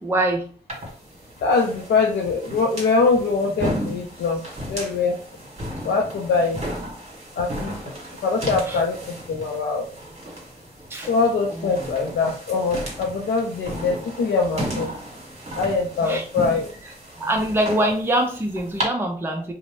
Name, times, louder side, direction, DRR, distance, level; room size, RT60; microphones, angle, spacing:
voice 1, 0.0-0.4 8.7-8.8 10.9-11.1 11.6-11.7 16.1-16.2 17.2-19.5, right 1 dB, 15° right, 2 dB, 0.5 m, -23 dB
sound 1, 0.7-18.8, equal, 35° right, 1.4 m, -34 dB
voice 2, 1.4-4.4 4.7-5.2 5.8-6.6 7.4-7.9 8.2-9.8 11.1-14.9 15.6-16.7, left 4 dB, 75° left, 0 dB, 0.4 m, -23 dB
2.5 x 2.0 x 3.1 m, 0.43 s
cardioid pair, 50°, 18 cm